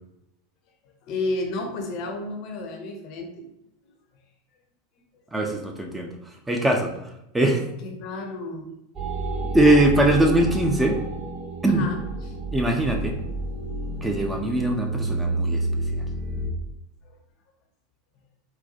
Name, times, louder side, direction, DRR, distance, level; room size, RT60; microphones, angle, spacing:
voice 1, 1.0-3.4 7.8-8.7 11.7-12.3 17.0-17.2, left 2 dB, 45° left, 3 dB, 0.6 m, -32 dB
voice 2, 5.3-6.1 6.5-6.9 7.3-7.6 9.5-11.0 11.6-11.9 12.5-13.1 14.0-15.7, right 1 dB, 10° right, 1 dB, 0.4 m, -21 dB
sound 1, 8.9-16.5, right 2 dB, 35° right, 1.1 m, -30 dB
3.9 x 2.2 x 2.7 m, 0.84 s
figure-of-eight pair, 85°, 0 cm